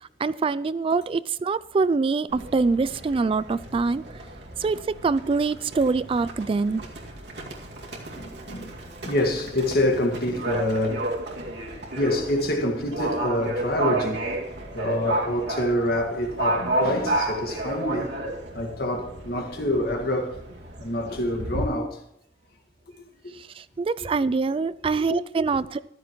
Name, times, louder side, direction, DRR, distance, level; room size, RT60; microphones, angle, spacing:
voice 1, 0.0-4.0 4.6-6.8 23.6-25.8, right 4 dB, 30° right, 0.3 m, -24 dB
Livestock farm animals working animals, 2.3-21.6, right 2 dB, 75° right, 2.2 m, -32 dB
voice 2, 8.1-8.7 9.0-11.1 12.0-14.2 14.7-18.1 18.5-20.4 20.8-22.0 24.9-25.2, left 1 dB, 60° left, 1.9 m, -26 dB
14.0 x 12.5 x 3.1 m
head